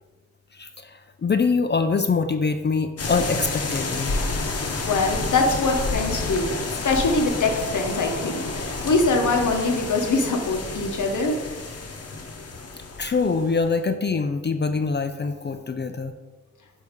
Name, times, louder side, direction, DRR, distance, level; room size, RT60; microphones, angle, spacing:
voice 1, 0.5-4.1 13.0-16.1, left 4 dB, 35° left, 7 dB, 0.4 m, -24 dB
sound 1, 3.0-13.7, left 3 dB, 55° left, 0.9 m, -30 dB
voice 2, 4.8-6.5 6.8-11.4, left 3 dB, 90° left, 2 dB, 1.1 m, -23 dB
8.3 x 2.8 x 5.1 m, 1.2 s
wide cardioid pair, 95°, 29 cm